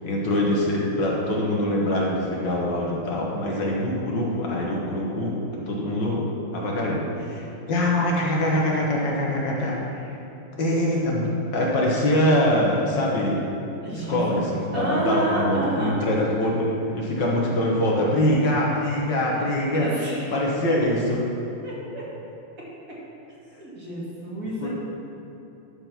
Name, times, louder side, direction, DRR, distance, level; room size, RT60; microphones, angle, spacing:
voice 1, 0.0-5.4 5.7-6.2 6.5-10.1 10.6-13.5 13.9-16.7 16.9-19.9 20.3-21.2 24.6-24.7, left 1 dB, 60° left, -3 dB, 1.8 m, -24 dB
voice 2, 13.8-14.4 14.7-16.0 19.3-19.4 19.7-20.3 21.6-22.0 23.6-24.7, right 1 dB, 40° right, -7 dB, 2.3 m, -29 dB
11.5 x 4.6 x 5.8 m, 3.0 s
omnidirectional pair, 2.3 m